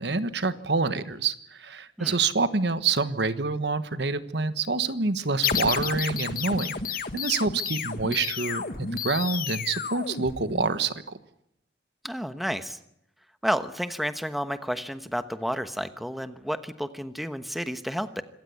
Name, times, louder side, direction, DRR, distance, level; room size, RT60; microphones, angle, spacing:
voice 1, 0.0-6.7 7.1-11.2, right 4 dB, 65° right, 12 dB, 1.3 m, -27 dB
sound 1, 5.4-10.9, left 6 dB, 50° left, 1.4 m, -31 dB
voice 2, 12.0-12.8 13.4-18.2, equal, ahead, 10 dB, 1.1 m, -31 dB
26.5 x 15.0 x 9.5 m, 0.77 s
head